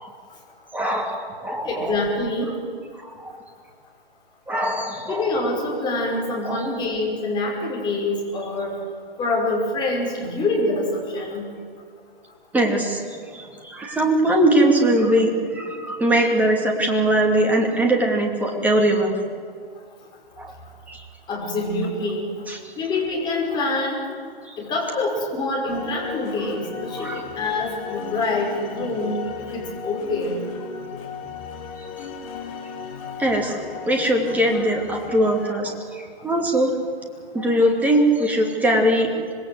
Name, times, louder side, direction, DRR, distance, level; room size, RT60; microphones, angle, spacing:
voice 1, 0.7-2.0 3.0-3.4 4.5-5.3 6.4-6.7 12.5-19.1 20.4-20.5 20.9-21.0 22.5-22.7 24.4-24.6 26.9-27.3 31.8-31.9 33.2-36.7 37.3-39.1, right 1 dB, 5° right, 1 dB, 2.8 m, -21 dB
voice 2, 1.6-2.5 5.1-8.8 9.2-11.4 21.3-22.3 22.8-24.0 24.6-29.2 29.5-30.4, left 2 dB, 15° left, -2 dB, 5.6 m, -25 dB
sound 1, 25.7-35.5, left 6 dB, 35° left, 3.2 m, -35 dB
26.0 x 20.5 x 8.0 m, 2.1 s
figure-of-eight pair, 130°, 30 cm